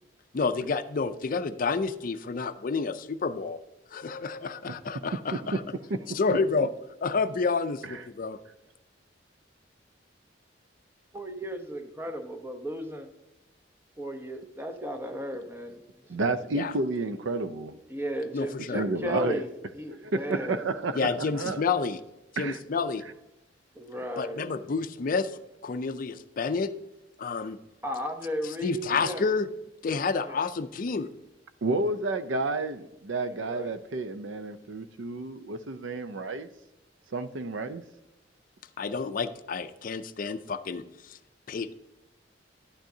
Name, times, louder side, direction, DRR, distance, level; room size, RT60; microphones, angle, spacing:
voice 1, 0.3-3.6 3.9-5.6 6.1-6.7 7.0-8.4 16.5-16.7 18.3-18.8 21.0-22.0 22.4-23.0 24.2-25.3 25.6-26.7 27.2-27.6 28.6-29.5 29.8-31.1 38.8-41.2 41.5-41.7, left 4 dB, 50° left, 11 dB, 0.4 m, -29 dB
voice 2, 5.9-6.7 7.8-8.0 16.1-17.8 18.7-19.4 19.9-21.6 22.4-22.6 31.6-36.5 37.1-37.8, right 3 dB, 85° right, 11 dB, 0.5 m, -31 dB
voice 3, 11.1-13.1 14.0-15.8 16.1-16.2 17.9-19.5 19.7-20.6 22.8-22.9 23.8-24.5 27.8-29.3 30.2-30.4 33.2-33.8, equal, 10° right, 6 dB, 0.8 m, -35 dB
11.5 x 9.0 x 2.7 m, 0.94 s
head